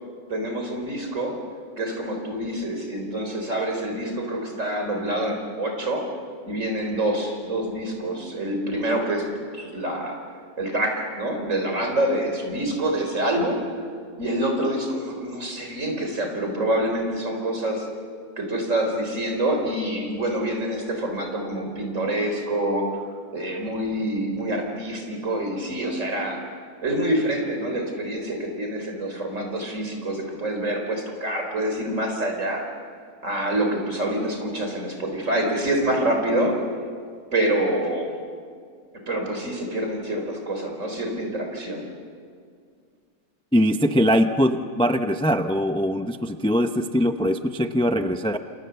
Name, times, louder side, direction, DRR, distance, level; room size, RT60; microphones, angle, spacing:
voice 1, 0.3-1.4 1.8-6.0 6.4-10.2 10.6-13.6 14.2-17.8 18.4-23.0 23.3-26.4 26.8-32.6 33.2-36.5 37.3-38.1 39.1-41.8, right 1 dB, 45° right, 3 dB, 4.5 m, -26 dB
voice 2, 43.5-48.4, equal, 10° left, 7 dB, 0.3 m, -22 dB
30.0 x 27.5 x 7.0 m, 2.1 s
omnidirectional pair, 1.9 m